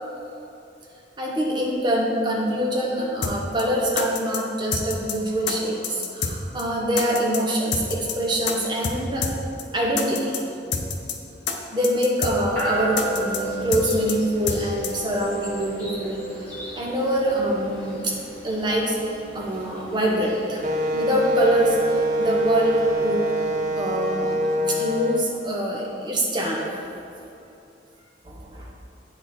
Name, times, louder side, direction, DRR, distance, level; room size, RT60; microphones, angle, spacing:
voice 1, 1.2-9.3 9.7-10.4 11.7-18.1 18.4-19.0 19.3-20.6 20.9-23.2 23.8-24.4 24.7-26.7 28.2-28.7, equal, 25° right, -3 dB, 1.0 m, -25 dB
sound 1, 3.2-3.3 3.6-3.7 4.0-4.4 4.7-5.1 5.5-5.6 5.8-6.3 6.6-6.7 7.0-7.4 7.7-8.1 8.5-8.6 8.8-9.0 9.2-9.3 9.6-9.7 10.0-10.4 10.7-11.1 11.5-11.6 11.8-12.3 12.6-12.7 13.0-13.4 13.7-14.1 14.5-14.6 14.8-14.9, left 6 dB, 75° left, 0.7 m, -27 dB
sound 2, 12.6-25.5, right 1 dB, 10° left, 1.6 m, -35 dB
Wind instrument woodwind instrument, 20.6-25.3, right 1 dB, 40° right, 0.4 m, -24 dB
9.0 x 4.4 x 4.4 m, 2.7 s
head